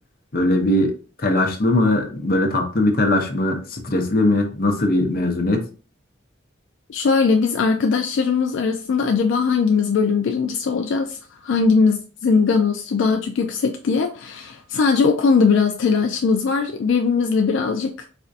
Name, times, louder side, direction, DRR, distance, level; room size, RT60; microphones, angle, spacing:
voice 1, 0.3-0.9 1.2-5.7, left 1 dB, 45° left, 0.7 m, -20 dB
voice 2, 6.9-18.0, left 5 dB, 75° left, 0.3 m, -20 dB
4.2 x 2.5 x 2.5 m
head